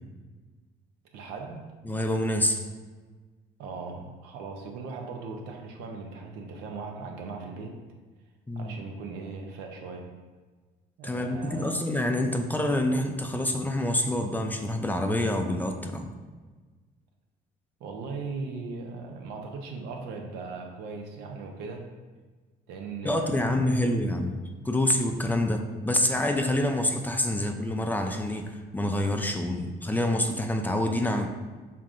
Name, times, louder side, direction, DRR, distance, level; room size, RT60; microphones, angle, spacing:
voice 1, 1.1-1.8 3.6-7.8 8.5-10.2 11.0-11.8 17.8-21.9 22.7-23.8 27.3-27.4, right 4 dB, 90° right, 2 dB, 0.7 m, -38 dB
voice 2, 1.9-2.6 8.5-8.8 11.0-16.1 23.0-24.4 24.6-31.3, left 1 dB, 10° left, 4 dB, 0.4 m, -27 dB
5.8 x 3.7 x 2.5 m, 1.4 s
cardioid pair, 110°, 17 cm